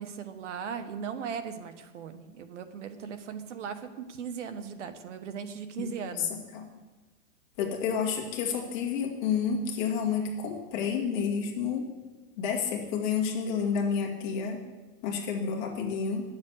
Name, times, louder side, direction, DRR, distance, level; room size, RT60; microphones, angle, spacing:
voice 1, 0.0-6.3, right 7 dB, 60° right, 8 dB, 1.2 m, -38 dB
voice 2, 5.8-6.6 7.6-11.9 12.4-14.6 15.0-16.2, left 6 dB, 35° left, 0 dB, 2.1 m, -30 dB
10.0 x 7.3 x 8.0 m, 1.2 s
supercardioid pair, 170°, 40 cm